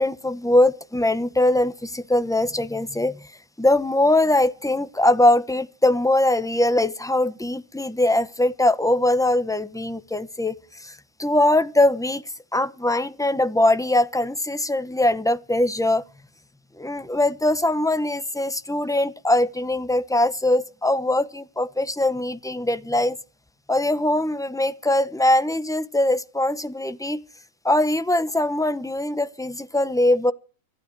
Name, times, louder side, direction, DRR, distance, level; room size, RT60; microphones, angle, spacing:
voice 1, 0.0-3.3 3.6-12.2 12.5-16.0 16.8-23.2 23.7-27.2 27.6-30.3, left 1 dB, 5° left, 0.6 m, -21 dB
25.5 x 12.0 x 4.7 m
omnidirectional pair, 1.6 m